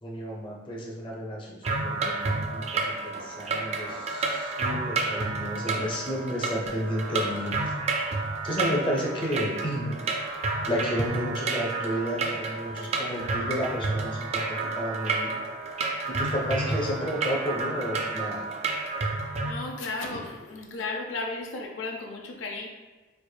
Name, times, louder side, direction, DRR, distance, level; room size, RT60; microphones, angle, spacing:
voice 1, 0.0-7.6 8.4-10.0 10.7-15.3 16.1-18.6, equal, 25° left, -2 dB, 0.6 m, -32 dB
sound 1, 1.6-19.5, right 3 dB, 35° right, 0.4 m, -30 dB
voice 2, 19.4-22.7, left 3 dB, 80° left, 1 dB, 0.5 m, -34 dB
4.5 x 2.5 x 2.2 m, 1.3 s
head